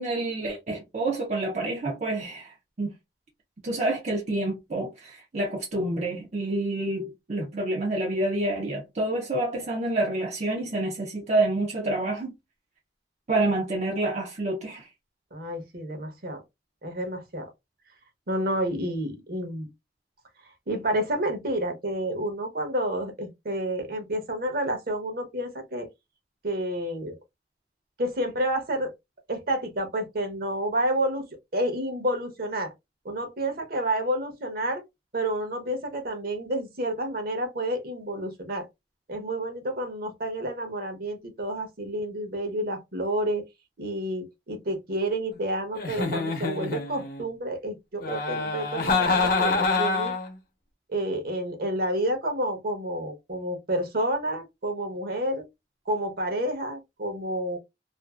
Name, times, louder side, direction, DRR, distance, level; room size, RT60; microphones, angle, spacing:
voice 1, 0.0-2.9 3.6-12.3 13.3-14.9, right 2 dB, 40° right, 0.6 m, -28 dB
voice 2, 15.3-16.4 16.8-17.5 18.3-19.7 20.7-25.9 26.4-27.2 28.0-28.9 29.3-31.2 31.5-32.7 33.0-34.8 35.1-38.7 39.1-43.4 43.8-50.1 50.9-55.5 55.9-57.6, right 1 dB, 55° right, 0.9 m, -29 dB
Giggle, 45.7-47.2 48.0-50.3, left 3 dB, 55° left, 0.8 m, -26 dB
2.6 x 2.5 x 2.3 m
head